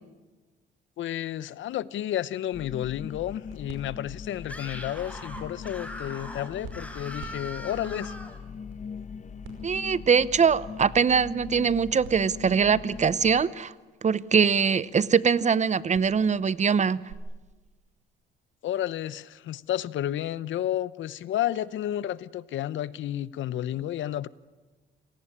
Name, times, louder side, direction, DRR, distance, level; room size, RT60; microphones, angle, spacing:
voice 1, 1.0-8.1 18.6-24.3, left 12 dB, 75° left, 0.8 m, -31 dB
sound 1, 2.5-13.4, left 6 dB, 35° left, 1.0 m, -41 dB
sound 2, 3.4-17.1, right 5 dB, 90° right, 5.5 m, -52 dB
Screaming, 4.4-8.4, left 1 dB, 5° left, 4.8 m, -41 dB
voice 2, 9.6-13.7 14.0-17.0, right 6 dB, 35° right, 0.8 m, -22 dB
27.0 x 18.0 x 9.9 m
cardioid pair, 90°, 20 cm